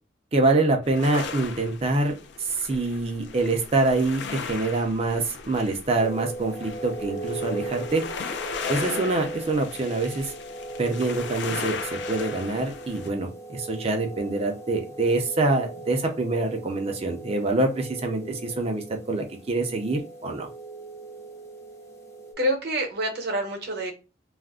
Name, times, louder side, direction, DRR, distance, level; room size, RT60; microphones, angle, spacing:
voice 1, 0.3-8.0 8.7-10.3 10.8-20.5, right 2 dB, 30° right, 3 dB, 0.5 m, -25 dB
sound 1, 0.8-13.1, left 5 dB, 65° left, 0.4 m, -37 dB
sound 2, 6.0-22.3, right 2 dB, 15° left, 0.6 m, -39 dB
voice 2, 22.4-23.9, right 1 dB, 55° right, 2 dB, 0.8 m, -27 dB
2.4 x 2.1 x 3.5 m, 0.30 s
head